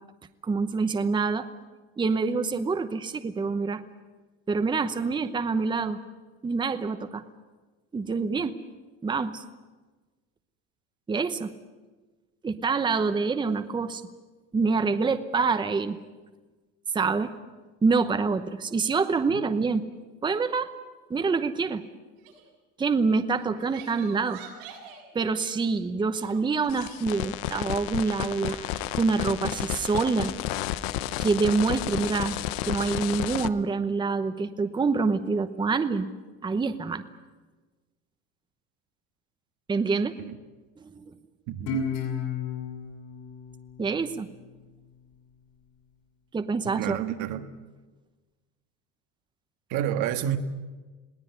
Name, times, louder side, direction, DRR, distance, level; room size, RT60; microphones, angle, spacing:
voice 1, 0.4-1.5 2.0-3.8 4.5-6.0 6.4-7.2 7.9-8.6 9.0-9.4 11.1-11.5 12.4-14.0 14.5-16.0 16.9-17.3 17.8-19.8 20.2-20.7 21.1-21.8 22.8-24.4 25.1-28.6 28.9-30.3 31.2-32.4 32.6-36.1 36.4-37.0 39.7-40.1 40.9-41.0 43.8-44.3 46.3-47.0, right 4 dB, 15° right, 0.9 m, -26 dB
Crying sobbing, 22.2-22.5 23.3-25.0 26.1-27.1 28.0-28.9, right 9 dB, 85° right, 7.5 m, -47 dB
sound 1, 26.7-33.5, left 14 dB, 85° left, 0.9 m, -32 dB
voice 2, 41.5-41.8 46.8-47.5 49.7-50.4, right 11 dB, 70° right, 1.7 m, -29 dB
Guitar, 41.7-44.9, left 5 dB, 65° left, 6.8 m, -34 dB
21.5 x 17.0 x 9.7 m
cardioid pair, 135°, 31 cm